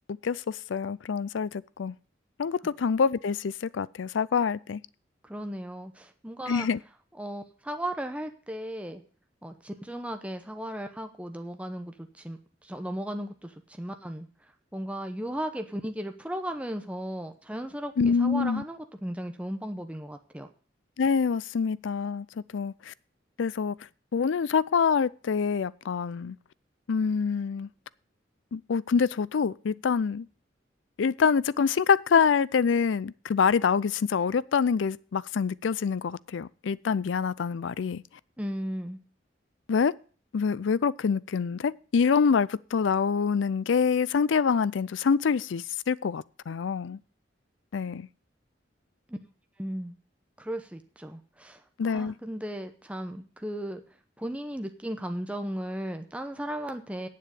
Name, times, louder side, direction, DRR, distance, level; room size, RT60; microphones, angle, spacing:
voice 1, 0.2-1.9 2.4-4.8 6.5-6.8 18.0-18.6 21.0-22.3 22.5-22.9 23.4-23.8 24.1-26.4 26.9-27.7 28.5-30.3 31.0-38.0 39.7-39.9 40.3-47.0 47.7-48.1 51.8-52.1, left 6 dB, 90° left, 0.4 m, -26 dB
voice 2, 5.2-6.7 7.2-9.0 9.4-14.3 14.7-20.5 38.4-39.0 49.1-49.2 49.6-49.9 50.4-53.8 54.2-57.1, right 1 dB, 5° right, 0.8 m, -36 dB
8.9 x 7.5 x 8.3 m
head